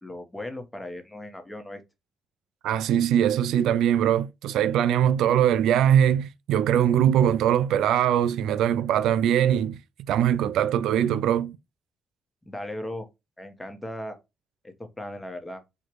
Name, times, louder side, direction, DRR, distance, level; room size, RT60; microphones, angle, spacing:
voice 1, 0.0-1.8 12.5-13.1 13.4-14.2 14.6-15.6, left 1 dB, 10° left, 1.0 m, -37 dB
voice 2, 2.6-9.8 10.1-11.6, right 10 dB, 85° right, 0.3 m, -22 dB
4.6 x 2.4 x 4.6 m
cardioid pair, 90°, 0 cm